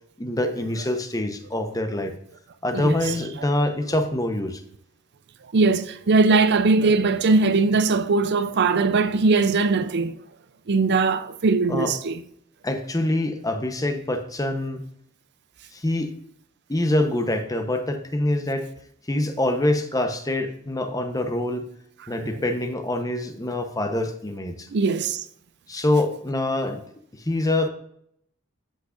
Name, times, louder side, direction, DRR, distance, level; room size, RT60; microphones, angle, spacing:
voice 1, 0.2-2.1 2.6-4.6 11.7-11.9 12.6-14.8 15.7-16.1 16.7-18.7 19.1-21.7 22.1-24.7 25.7-26.8 27.1-27.7, left 1 dB, 15° left, 0.9 m, -25 dB
voice 2, 5.5-10.1 10.7-12.2 24.7-25.2, right 3 dB, 55° right, 0.5 m, -20 dB
13.5 x 6.0 x 2.5 m
head